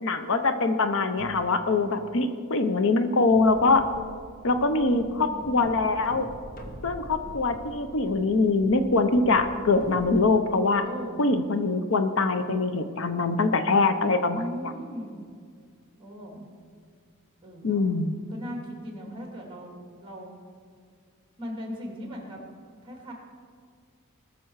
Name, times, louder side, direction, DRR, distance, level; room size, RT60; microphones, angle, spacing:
voice 1, 0.0-3.8 4.4-6.3 6.8-10.8 11.2-14.4 17.6-18.2, left 3 dB, 65° left, 9 dB, 0.7 m, -23 dB
sound 1, 1.2-1.6 3.3-10.2, equal, 45° left, 1.4 m, -45 dB
voice 2, 4.9-5.7 10.8-11.3 14.3-15.2 16.0-16.5 17.4-17.9 18.3-20.3 21.4-22.4 22.8-23.1, equal, 25° right, 0 dB, 2.7 m, -39 dB
20.0 x 6.8 x 4.7 m, 2.1 s
head